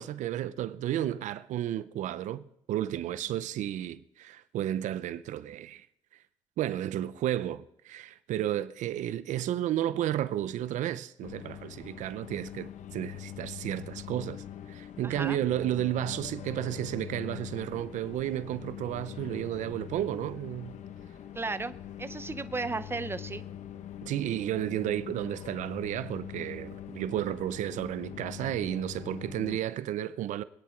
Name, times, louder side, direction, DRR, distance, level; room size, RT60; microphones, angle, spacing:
voice 1, 0.0-5.9 6.6-20.8 24.0-30.4, right 12 dB, 90° right, 0.6 m, -32 dB
sound 1, 11.2-29.6, left 10 dB, 75° left, 1.0 m, -43 dB
voice 2, 15.0-15.4 21.3-21.7 22.0-23.4, right 3 dB, 20° right, 0.7 m, -34 dB
25.5 x 9.7 x 4.5 m
cardioid pair, 90°, 12 cm